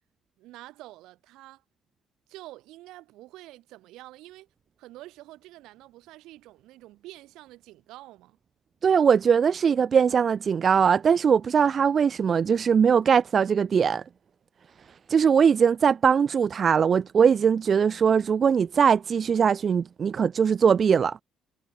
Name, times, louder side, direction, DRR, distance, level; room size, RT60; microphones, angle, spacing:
voice 1, 0.4-1.6 2.3-4.5 4.8-8.4, right 17 dB, 85° right, 6.2 m, -47 dB
voice 2, 8.8-14.0 15.1-21.2, right 7 dB, 35° right, 1.0 m, -21 dB
cardioid pair, 145°, 0 cm